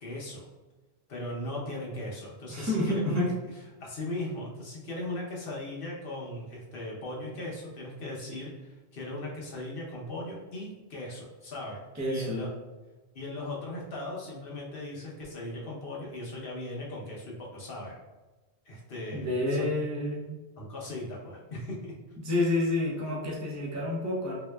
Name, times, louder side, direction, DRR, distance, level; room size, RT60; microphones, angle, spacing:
voice 1, 0.0-0.4 1.1-3.3 3.8-11.8 12.1-12.5 13.1-18.0 18.6-19.7 20.6-21.9, left 1 dB, 60° left, -4 dB, 1.0 m, -38 dB
voice 2, 2.5-3.3 11.9-12.5 19.1-20.4 22.2-24.4, left 1 dB, 20° right, -5 dB, 0.6 m, -29 dB
3.4 x 2.8 x 2.2 m, 1.2 s
omnidirectional pair, 1.1 m